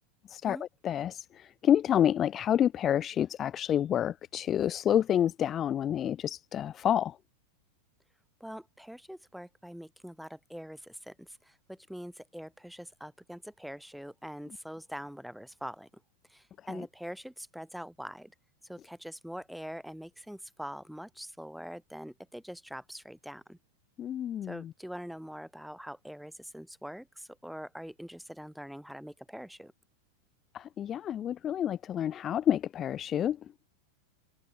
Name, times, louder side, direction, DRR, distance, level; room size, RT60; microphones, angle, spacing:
voice 1, 0.3-7.2 16.7-16.8 24.0-24.7 30.5-33.4, left 10 dB, 25° left, 2.1 m, -28 dB
voice 2, 8.4-15.9 16.3-18.3 18.7-23.6 24.4-29.7, equal, ahead, 7.9 m, -44 dB
figure-of-eight pair, 90°, 0 cm